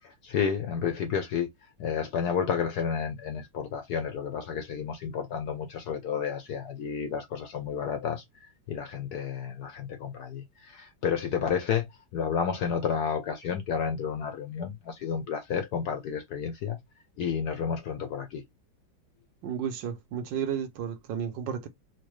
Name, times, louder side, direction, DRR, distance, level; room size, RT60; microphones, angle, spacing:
voice 1, 0.0-16.8 17.2-18.4, left 7 dB, 75° left, 0.9 m, -31 dB
voice 2, 19.4-21.7, right 8 dB, 70° right, 1.4 m, -32 dB
4.5 x 2.1 x 3.0 m
omnidirectional pair, 2.2 m